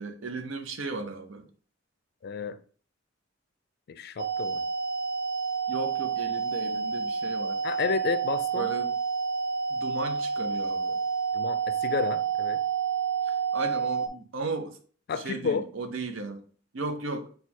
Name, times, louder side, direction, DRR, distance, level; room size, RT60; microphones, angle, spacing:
voice 1, 0.0-1.4 5.7-7.6 8.5-8.9 9.7-11.0 13.3-14.8 15.2-16.4 16.7-17.3, right 3 dB, 90° right, 0.7 m, -35 dB
voice 2, 2.2-2.6 3.9-4.6 7.6-8.7 11.3-12.6 15.1-15.7, left 5 dB, 55° left, 0.4 m, -31 dB
sound 1, 4.2-14.1, right 6 dB, 45° right, 0.4 m, -29 dB
4.3 x 2.3 x 4.5 m
head